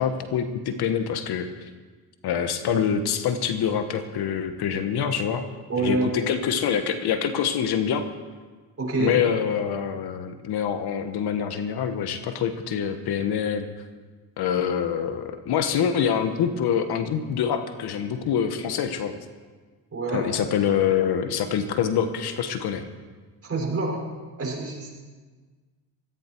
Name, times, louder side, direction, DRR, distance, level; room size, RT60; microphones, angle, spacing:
voice 1, 0.0-1.7 2.2-5.4 5.8-8.0 9.0-13.7 14.4-19.2 20.1-22.8, left 8 dB, 70° left, 9 dB, 1.3 m, -25 dB
voice 2, 5.7-6.2 8.8-9.2 19.9-20.3 23.4-24.0 24.4-24.9, right 2 dB, 35° right, -2 dB, 5.8 m, -26 dB
16.5 x 14.5 x 4.6 m, 1.4 s
supercardioid pair, 80°, 40 cm